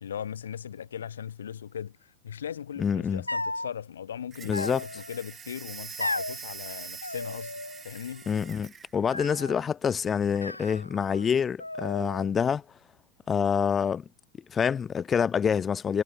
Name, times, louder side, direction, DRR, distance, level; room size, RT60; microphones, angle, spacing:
voice 1, 0.0-7.5 7.8-8.3, left 8 dB, 65° left, 1.1 m, -38 dB
voice 2, 2.8-3.2 4.5-4.8 8.3-12.6 13.3-14.0 14.5-16.0, left 7 dB, 20° left, 0.7 m, -26 dB
sound 1, 3.3-3.7 4.5-5.2 6.0-6.4 7.0-7.8 8.1-8.7 9.1-9.7 10.4-11.3 11.6-12.3, left 2 dB, 85° left, 0.7 m, -35 dB
sound 2, 4.3-8.9, right 6 dB, 20° right, 1.3 m, -44 dB
figure-of-eight pair, 90°, 0 cm